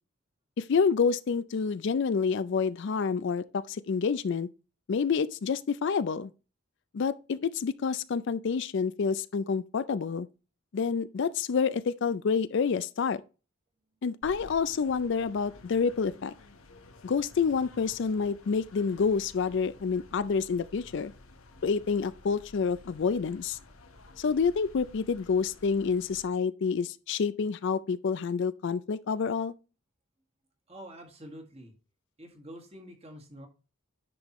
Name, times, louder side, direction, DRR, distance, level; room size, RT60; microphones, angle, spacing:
voice 1, 0.6-4.5 4.9-6.3 6.9-10.3 10.7-13.2 14.0-16.3 17.0-21.1 21.6-23.6 24.2-29.5, left 5 dB, 60° left, 0.4 m, -28 dB
sound 1, 14.2-26.3, left 2 dB, 80° left, 1.1 m, -53 dB
voice 2, 30.7-31.7 32.2-33.5, equal, 30° right, 1.7 m, -47 dB
10.0 x 5.3 x 3.0 m
head